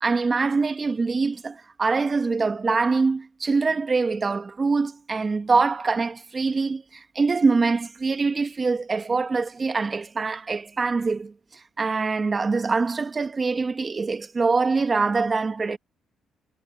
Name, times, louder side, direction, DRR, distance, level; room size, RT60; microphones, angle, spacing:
voice 1, 0.0-15.8, right 4 dB, 30° right, 2.0 m, -24 dB
cardioid pair, 90°, 0 cm